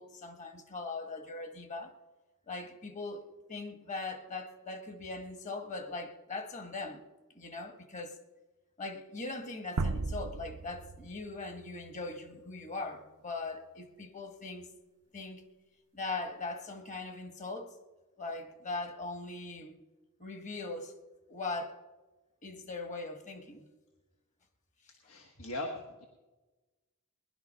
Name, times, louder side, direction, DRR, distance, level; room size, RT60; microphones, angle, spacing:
voice 1, 0.0-1.9 2.5-3.2 3.5-7.0 7.3-8.2 8.8-14.7 15.1-15.4 15.9-17.7 18.2-19.8 20.2-21.0 21.3-21.8 22.4-23.7, left 3 dB, 35° left, 1.3 m, -40 dB
sound 1, 9.8-12.7, right 3 dB, 85° right, 0.6 m, -37 dB
voice 2, 25.1-26.1, left 1 dB, 90° left, 1.4 m, -39 dB
19.5 x 11.0 x 5.5 m
head